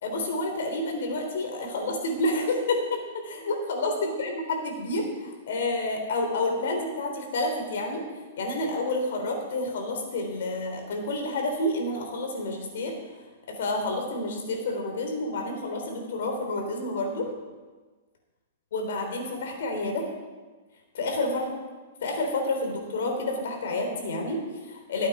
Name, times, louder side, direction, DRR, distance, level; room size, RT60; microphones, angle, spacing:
voice 1, 0.0-8.0 8.4-12.9 13.5-17.3 18.7-20.1 20.9-21.5 22.0-25.1, left 2 dB, 70° left, 3 dB, 3.5 m, -29 dB
15.5 x 8.6 x 5.0 m, 1.3 s
hypercardioid pair, 155°, 0 cm